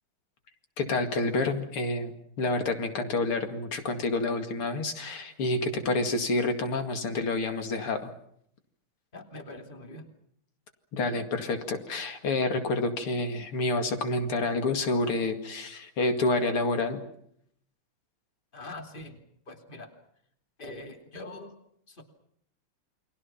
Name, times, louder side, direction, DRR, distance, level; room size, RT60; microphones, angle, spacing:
voice 1, 0.8-8.1 10.9-17.0, left 2 dB, 85° left, 7 dB, 3.1 m, -28 dB
voice 2, 9.1-10.1 18.5-19.2 19.5-19.9 20.6-21.5 21.9-22.0, left 2 dB, 25° left, 5 dB, 2.9 m, -43 dB
29.0 x 24.0 x 5.8 m, 0.70 s
omnidirectional pair, 2.4 m